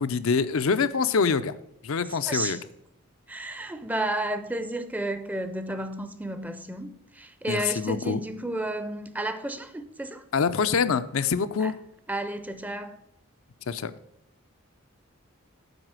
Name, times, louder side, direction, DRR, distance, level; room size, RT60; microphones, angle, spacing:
voice 1, 0.0-1.5 1.8-2.6 7.5-8.2 10.3-11.7 13.7-13.9, left 5 dB, 70° left, 0.5 m, -25 dB
voice 2, 2.0-2.6 3.3-10.2 11.6-11.8 12.1-13.0, right 1 dB, 5° right, 0.5 m, -32 dB
8.0 x 4.8 x 7.4 m
head